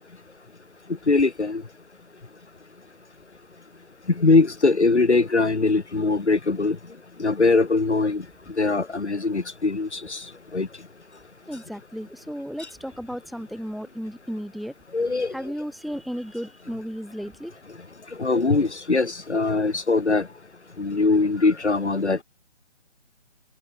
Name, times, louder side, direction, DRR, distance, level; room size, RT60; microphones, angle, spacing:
voice 1, 1.1-1.6 4.2-6.8 7.2-8.2 8.6-10.2 10.5-10.7 14.9-15.3 18.2-20.3 20.8-22.2, left 3 dB, 65° left, 2.9 m, -21 dB
voice 2, 11.5-14.7 15.3-17.5, equal, ahead, 7.1 m, -34 dB
figure-of-eight pair, 150°, 37 cm